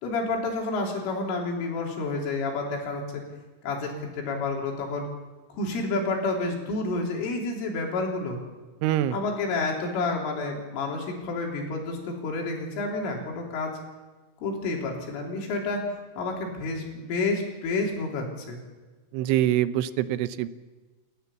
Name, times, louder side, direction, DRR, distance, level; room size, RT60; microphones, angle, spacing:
voice 1, 0.0-3.2 3.6-5.1 5.5-8.4 9.1-13.8 14.4-15.8 16.2-18.6, left 3 dB, 85° left, 0 dB, 5.9 m, -29 dB
voice 2, 8.8-9.2 19.1-20.5, right 13 dB, 85° right, 13 dB, 3.2 m, -24 dB
29.5 x 14.0 x 7.1 m, 1.3 s
omnidirectional pair, 5.6 m